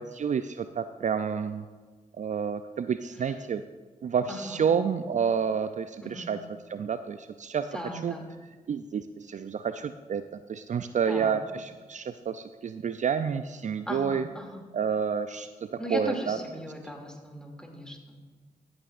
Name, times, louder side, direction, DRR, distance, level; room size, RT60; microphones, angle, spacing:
voice 1, 0.0-1.7 2.2-3.6 4.0-6.4 6.7-7.7 8.0-8.1 8.7-14.2 14.7-16.4, right 7 dB, 55° right, 11 dB, 0.4 m, -29 dB
voice 2, 4.3-4.6 6.0-6.3 7.7-8.2 11.0-11.4 13.9-14.7 15.8-18.2, equal, 5° left, 1 dB, 2.5 m, -38 dB
14.0 x 8.7 x 2.5 m, 1.4 s
supercardioid pair, 40°, 15 cm